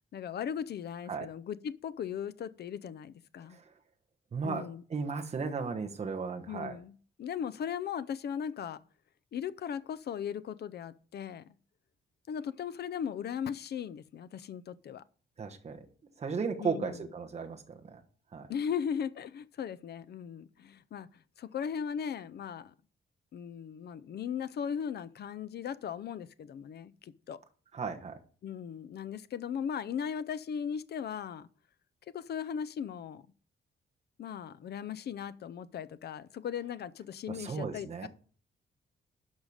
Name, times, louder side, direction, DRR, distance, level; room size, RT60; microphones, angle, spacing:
voice 1, 0.1-3.6 4.4-4.8 6.5-8.8 9.3-11.5 12.3-15.0 16.6-17.0 18.5-22.7 23.3-27.4 28.4-31.5 32.1-33.2 34.2-38.1, left 8 dB, 60° left, 0.6 m, -38 dB
voice 2, 4.3-6.8 15.4-15.9 16.2-18.0 18.3-18.5 27.7-28.2 37.3-38.1, right 5 dB, 35° right, 1.2 m, -35 dB
11.5 x 5.7 x 4.9 m
wide cardioid pair, 175°, 20 cm